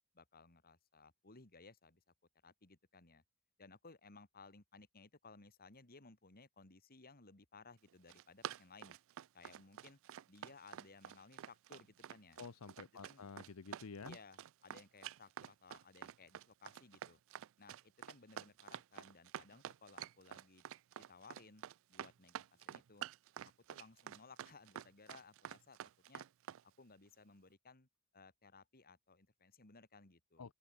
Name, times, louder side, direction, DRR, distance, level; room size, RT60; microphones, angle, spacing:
voice 1, 0.1-2.0 2.4-3.2 3.6-9.0 9.3-10.0 10.3-12.4 13.0-13.3 14.1-17.2 17.6-20.6 21.1-21.6 21.9-23.1 23.7-25.8 26.1-26.3 26.8-27.9 28.1-30.5, left 4 dB, 45° left, 2.6 m, -60 dB
Run, 7.9-26.6, right 10 dB, 65° right, 0.4 m, -49 dB
voice 2, 12.4-14.2 30.4-30.5, left 5 dB, 85° left, 0.7 m, -50 dB
open air
head